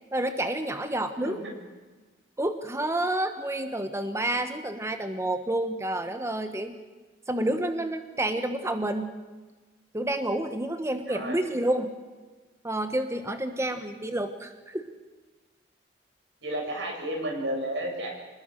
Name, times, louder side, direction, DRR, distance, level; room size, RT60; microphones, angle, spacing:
voice 1, 0.1-1.4 2.4-6.8 7.3-9.1 9.9-11.9 12.6-14.9, right 1 dB, 15° right, 8 dB, 1.2 m, -29 dB
voice 2, 11.1-11.4 16.4-18.1, right 1 dB, 85° right, 1 dB, 7.5 m, -32 dB
26.0 x 20.0 x 6.5 m, 1.3 s
head